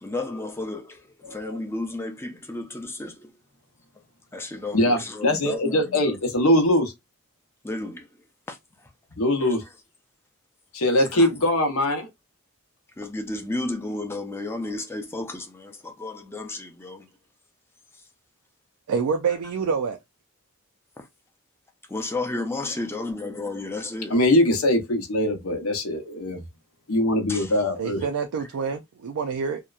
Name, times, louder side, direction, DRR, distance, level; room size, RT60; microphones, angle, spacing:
voice 1, 0.0-3.3 4.3-6.2 7.6-8.1 8.5-8.6 9.4-9.5 11.1-11.3 13.0-17.1 21.9-24.1 27.3-27.5, left 2 dB, 10° left, 0.5 m, -32 dB
voice 2, 1.2-1.6 4.7-6.9 9.2-9.6 10.7-12.1 24.1-26.4 26.9-28.0, left 1 dB, 70° left, 0.7 m, -22 dB
voice 3, 18.9-20.0 27.8-29.6, right 5 dB, 90° right, 0.4 m, -27 dB
2.8 x 2.1 x 2.3 m
head